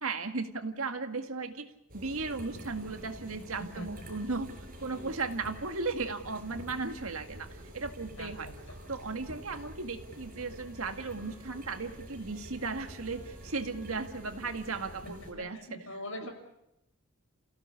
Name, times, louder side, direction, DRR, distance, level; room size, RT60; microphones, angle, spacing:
voice 1, 0.0-4.5 4.8-7.5 7.7-8.5 8.9-15.6 16.2-16.3, right 3 dB, 75° right, 7 dB, 1.9 m, -36 dB
sound 1, 1.9-15.3, equal, 40° right, 5.4 m, -48 dB
voice 2, 8.2-8.5 15.0-16.3, left 1 dB, 65° left, 4 dB, 5.6 m, -42 dB
sound 2, 8.9-14.3, equal, 15° left, 6.4 m, -63 dB
29.0 x 16.5 x 8.5 m, 0.87 s
head